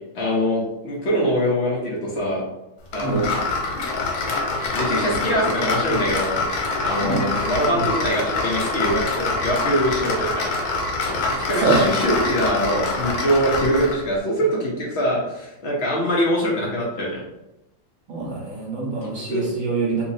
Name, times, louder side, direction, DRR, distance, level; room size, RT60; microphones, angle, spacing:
voice 1, 0.1-2.4 2.9-3.3 4.7-6.4 6.8-10.6 11.1-17.2 19.3-19.5, equal, 60° left, -4 dB, 0.6 m, -23 dB
sound 1, 2.9-14.0, left 3 dB, 75° left, 1.5 m, -25 dB
voice 2, 7.0-7.5 11.6-11.9 18.1-20.1, right 4 dB, 50° right, -4 dB, 1.4 m, -24 dB
3.3 x 3.0 x 2.7 m, 0.92 s
omnidirectional pair, 2.2 m